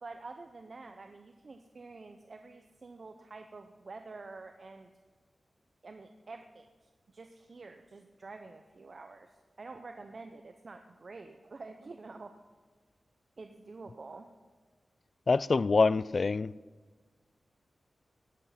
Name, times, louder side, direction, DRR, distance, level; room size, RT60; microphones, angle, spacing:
voice 1, 0.0-4.9 5.8-12.3 13.4-14.3, right 3 dB, 50° right, 0.7 m, -48 dB
voice 2, 15.3-16.5, left 4 dB, 45° left, 0.3 m, -25 dB
19.5 x 8.1 x 5.8 m
wide cardioid pair, 120°, 0 cm